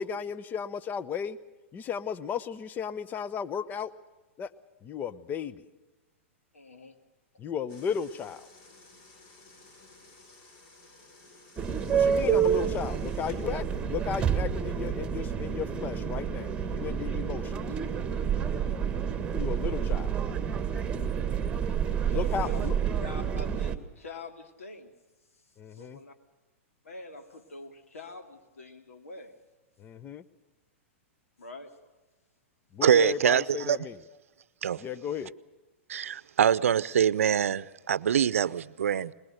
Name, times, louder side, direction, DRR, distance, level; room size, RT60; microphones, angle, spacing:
voice 1, 0.0-1.4 1.7-3.9 4.4-4.5 4.8-5.6 7.4-8.5 11.9-17.6 19.3-20.1 22.1-22.8 25.6-26.0 29.8-30.2 32.7-34.0 34.8-35.3, left 7 dB, 25° left, 0.8 m, -34 dB
voice 2, 6.5-6.9 21.9-22.7 23.0-24.9 25.7-26.1 26.8-29.3 31.4-31.7, left 2 dB, 85° left, 2.7 m, -45 dB
sound 1, 7.7-13.9, left 2 dB, 50° left, 5.2 m, -55 dB
sound 2, 11.6-23.7, right 7 dB, 15° right, 1.6 m, -29 dB
voice 3, 32.8-33.8 34.6-34.8 35.9-39.1, right 8 dB, 80° right, 0.7 m, -24 dB
22.5 x 21.0 x 6.6 m
hypercardioid pair, 120°, 7 cm